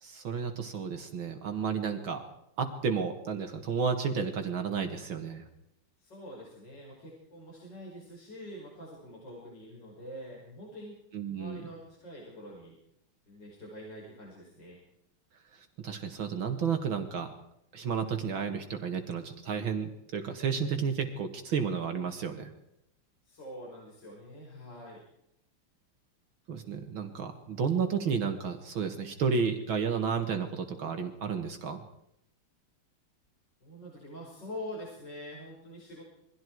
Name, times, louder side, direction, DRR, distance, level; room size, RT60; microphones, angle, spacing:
voice 1, 0.0-2.2 2.6-5.4 11.1-11.7 15.5-17.3 17.7-22.5 26.5-31.8, right 6 dB, 70° right, 5 dB, 2.5 m, -32 dB
voice 2, 6.0-11.0 11.3-12.8 13.3-14.8 23.2-25.0 33.6-36.0, equal, 55° left, -4 dB, 6.4 m, -45 dB
28.0 x 23.0 x 4.7 m, 0.80 s
omnidirectional pair, 2.3 m